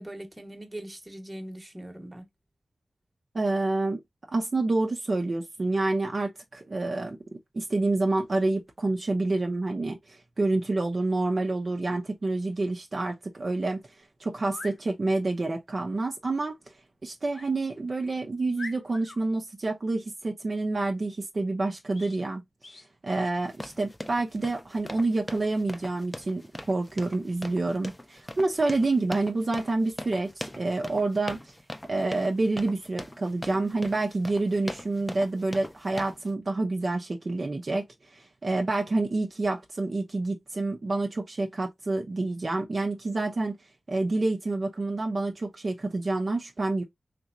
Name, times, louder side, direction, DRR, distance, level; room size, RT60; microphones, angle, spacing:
voice 1, 0.0-2.2, right 1 dB, 20° right, 1.2 m, -41 dB
voice 2, 3.3-4.0 4.3-7.2 7.5-13.8 14.2-16.6 17.0-22.4 23.0-31.4 31.9-37.9 38.1-43.6 43.9-46.8, right 2 dB, 55° right, 0.7 m, -28 dB
sound 1, 14.4-14.8 17.3-17.5 18.0-18.1 18.6-19.2 21.9-22.2 22.6-22.9, left 3 dB, 55° left, 0.6 m, -43 dB
sound 2, 23.4-36.3, left 1 dB, 20° left, 0.6 m, -41 dB
3.4 x 3.0 x 2.6 m
cardioid pair, 50°, 0 cm